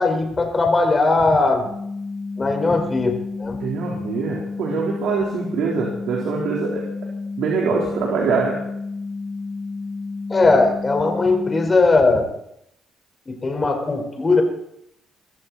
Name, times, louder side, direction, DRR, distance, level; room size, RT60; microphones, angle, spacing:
voice 1, 0.0-1.6 2.4-3.6 10.3-12.3 13.3-14.4, left 3 dB, 30° left, 3 dB, 4.8 m, -19 dB
sound 1, 1.6-11.7, left 3 dB, 30° right, 5.9 m, -31 dB
voice 2, 3.6-6.8 7.4-8.6, right 5 dB, 80° right, -3 dB, 3.9 m, -24 dB
23.0 x 14.5 x 4.3 m, 0.76 s
cardioid pair, 90°, 0 cm